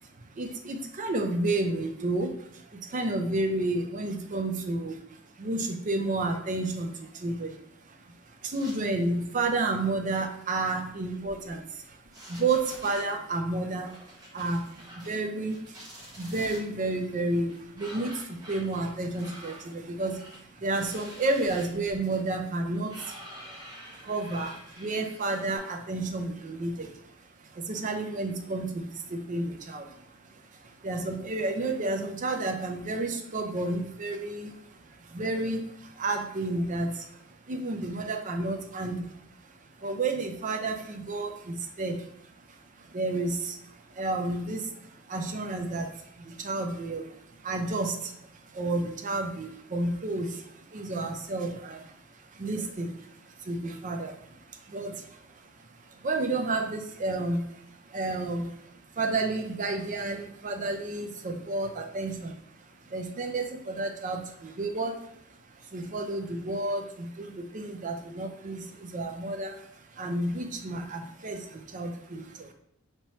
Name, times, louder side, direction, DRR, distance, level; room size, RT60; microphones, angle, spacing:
voice 1, 0.3-7.6 7.9-8.0 8.4-12.0 12.2-23.6 23.9-27.0 27.4-30.2 30.4-39.5 39.8-42.1 42.5-65.1 65.5-72.5, right 2 dB, 35° right, 5 dB, 0.5 m, -31 dB
sound 1, 8.5-9.1 9.4-9.6 10.9-11.7 12.0-13.1 13.8-15.2 15.5-16.6 17.5-25.6, equal, 20° right, 1.0 m, -47 dB
4.4 x 3.1 x 2.9 m, 0.70 s
head